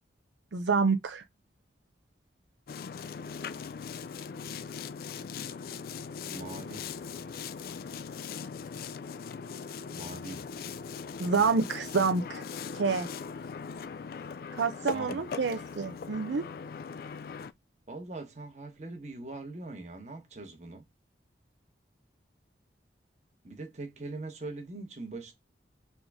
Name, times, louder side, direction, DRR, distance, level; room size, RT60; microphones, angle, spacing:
voice 1, 0.5-1.2 11.2-12.4 12.7-13.1 14.5-16.4, right 4 dB, 80° right, 0.5 m, -28 dB
Boat Water vehicle, 2.7-17.5, left 6 dB, 55° left, 0.3 m, -40 dB
voice 2, 6.3-6.9 9.9-10.5 14.8-15.4 17.9-20.8 23.4-25.3, right 2 dB, 40° right, 1.1 m, -42 dB
3.7 x 3.7 x 3.5 m
head